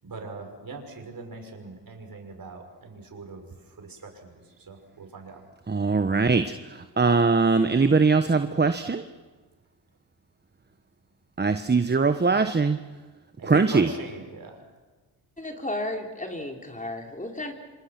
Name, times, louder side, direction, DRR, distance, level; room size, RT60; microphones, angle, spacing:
voice 1, 0.0-3.5 3.8-5.4 13.4-14.6, right 3 dB, 50° right, 3 dB, 6.3 m, -41 dB
voice 2, 5.7-6.5 7.0-9.0 11.4-12.8 13.5-13.9, right 4 dB, 20° right, 9 dB, 1.2 m, -21 dB
voice 3, 15.4-17.5, left 1 dB, 15° left, 2 dB, 4.1 m, -33 dB
27.0 x 26.5 x 6.1 m, 1.3 s
supercardioid pair, 55°, 45 cm